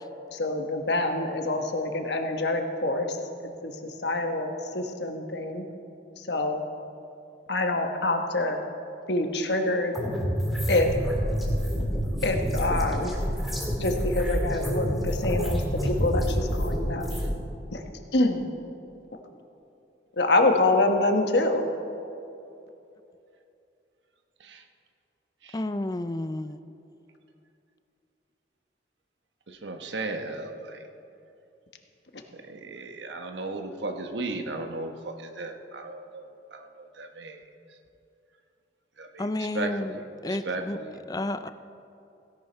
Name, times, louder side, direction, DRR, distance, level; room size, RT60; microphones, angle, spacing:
voice 1, 0.3-5.7 6.2-6.6 7.5-8.6 9.1-10.0 10.7-10.9 12.2-13.3 13.8-17.2 17.7-17.8 18.1-18.4 20.2-21.7, left 2 dB, 70° left, 5 dB, 1.2 m, -26 dB
sound 1, 9.9-17.3, equal, ahead, 1.9 m, -28 dB
voice 2, 25.5-26.6 39.2-40.0 40.2-40.8 41.1-41.5, left 1 dB, 20° left, 12 dB, 0.4 m, -31 dB
voice 3, 29.5-30.9 32.3-37.4 37.7-37.8 39.0-40.0 40.2-40.9, right 2 dB, 80° right, 5 dB, 1.1 m, -36 dB
16.5 x 11.0 x 4.5 m, 2.7 s
head